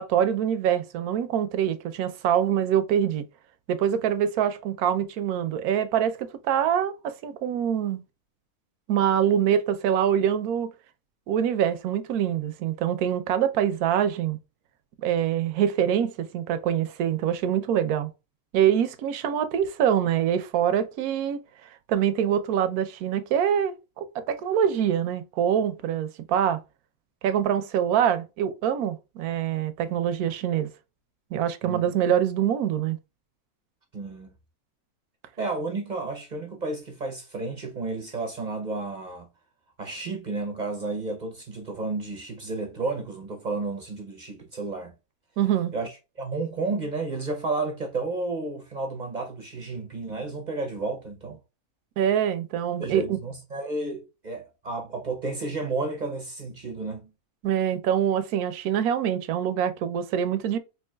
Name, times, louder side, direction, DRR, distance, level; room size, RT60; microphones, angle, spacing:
voice 1, 0.0-3.2 3.7-8.0 8.9-10.7 11.3-14.4 15.0-18.1 18.5-21.4 21.9-26.6 27.2-30.7 31.3-33.0 45.4-45.7 52.0-53.2 57.4-60.6, right 9 dB, 80° right, 1.1 m, -24 dB
voice 2, 33.9-34.3 35.4-39.3 39.8-44.9 45.7-51.4 52.8-57.1, right 3 dB, 45° right, 0.6 m, -32 dB
4.6 x 2.9 x 2.2 m
omnidirectional pair, 1.6 m